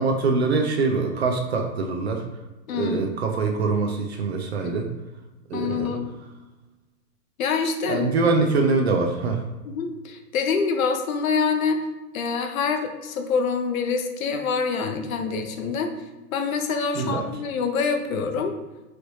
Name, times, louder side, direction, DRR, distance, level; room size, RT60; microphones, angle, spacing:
voice 1, 0.0-2.2 2.7-4.9 5.5-5.9 7.9-9.4 16.9-17.3, right 4 dB, 45° right, 3 dB, 0.4 m, -24 dB
voice 2, 2.7-3.1 4.6-4.8 5.5-6.1 7.4-8.1 9.7-11.8 12.1-15.9 16.3-18.5, left 5 dB, 60° left, 6 dB, 0.6 m, -26 dB
3.1 x 3.1 x 2.7 m, 1.1 s
hypercardioid pair, 150°, 48 cm